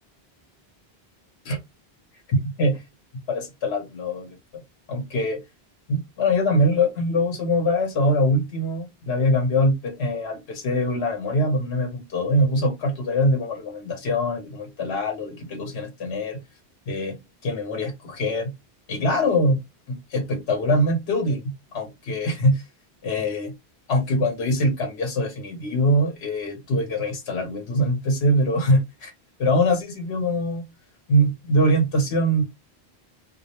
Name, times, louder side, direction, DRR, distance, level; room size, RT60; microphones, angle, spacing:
voice 1, 2.3-2.8 3.3-4.6 4.9-5.4 5.9-16.4 16.9-18.5 18.9-19.6 19.9-22.6 23.0-23.5 23.9-29.1 29.4-30.6 31.1-32.4, equal, 85° left, 1.0 m, -23 dB
2.4 x 2.0 x 2.7 m
omnidirectional pair, 1.1 m